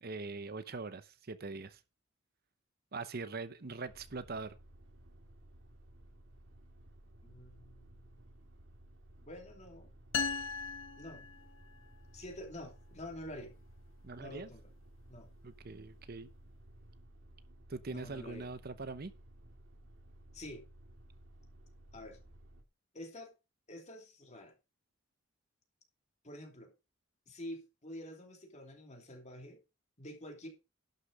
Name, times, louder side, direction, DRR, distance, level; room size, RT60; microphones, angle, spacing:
voice 1, 0.0-1.8 2.9-4.6 14.0-14.5 15.4-16.3 17.7-19.1, right 3 dB, 50° right, 0.8 m, -42 dB
sound 1, 3.8-22.6, right 1 dB, 70° right, 2.0 m, -57 dB
voice 2, 7.2-8.2 9.2-9.9 11.0-11.3 12.1-13.5 14.2-14.7 15.1-15.3 17.9-18.5 20.3-20.7 21.9-22.2 22.9-23.3 23.7-24.5 26.2-26.7 27.3-29.6 30.0-30.5, left 1 dB, 35° left, 2.9 m, -48 dB
sound 2, 10.1-11.9, left 5 dB, 75° left, 1.1 m, -37 dB
11.5 x 6.7 x 5.2 m
head